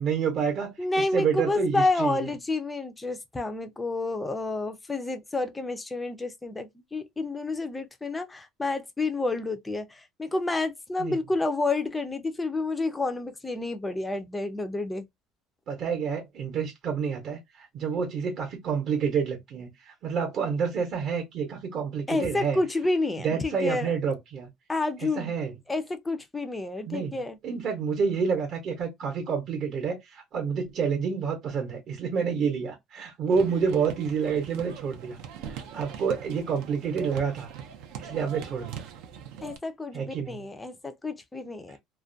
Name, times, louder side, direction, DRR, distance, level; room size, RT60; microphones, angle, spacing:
voice 1, 0.0-2.3 11.0-11.2 15.7-22.6 23.2-24.5 25.0-25.5 26.8-37.5 38.0-38.9 39.9-40.4 41.7-41.8, right 6 dB, 40° right, 0.7 m, -29 dB
voice 2, 0.8-15.1 22.1-23.9 24.7-25.3 25.7-27.4 39.4-41.8, left 2 dB, 10° left, 0.4 m, -29 dB
sound 1, 33.3-39.6, right 8 dB, 80° right, 0.5 m, -41 dB
2.3 x 2.1 x 2.5 m
cardioid pair, 170°, 0 cm